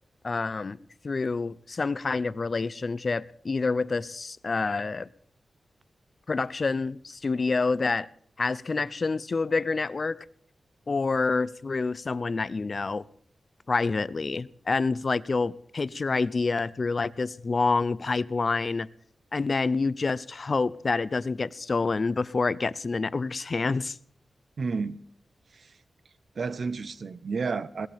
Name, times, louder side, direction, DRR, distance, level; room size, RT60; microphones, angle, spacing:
voice 1, 0.2-0.8 1.0-5.1 6.3-8.1 8.4-10.2 10.9-13.1 13.7-18.9 19.3-24.0, left 4 dB, 45° left, 0.7 m, -27 dB
voice 2, 24.6-25.0 25.5-25.8 26.3-27.9, right 4 dB, 60° right, 0.9 m, -31 dB
21.5 x 18.5 x 3.6 m
wide cardioid pair, 85°, 0 cm